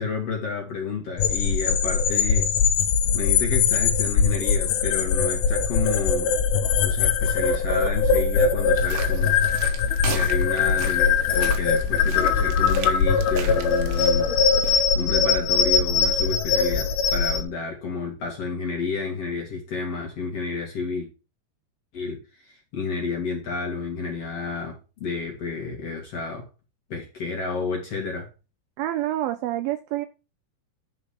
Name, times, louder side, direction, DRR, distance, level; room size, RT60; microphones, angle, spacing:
voice 1, 0.0-2.5 3.1-6.3 6.8-9.4 10.1-14.3 14.9-21.1 21.9-26.5 26.9-28.3, left 4 dB, 45° left, 2.3 m, -30 dB
sound 1, 1.2-17.4, left 6 dB, 75° left, 2.7 m, -21 dB
sound 2, 8.8-14.8, right 9 dB, 70° right, 3.2 m, -38 dB
voice 2, 28.8-30.1, right 14 dB, 90° right, 2.0 m, -27 dB
10.5 x 5.1 x 5.6 m
omnidirectional pair, 5.2 m